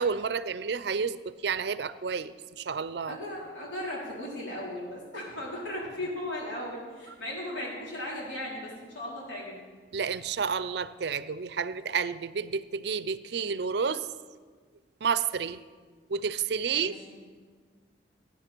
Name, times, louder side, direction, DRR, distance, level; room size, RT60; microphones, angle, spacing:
voice 1, 0.0-3.2 9.9-14.1 15.0-15.6 16.1-16.9, right 6 dB, 60° right, 0.5 m, -30 dB
voice 2, 3.1-9.6 16.7-17.2, left 1 dB, 85° left, 4.4 m, -37 dB
18.5 x 9.9 x 4.5 m
head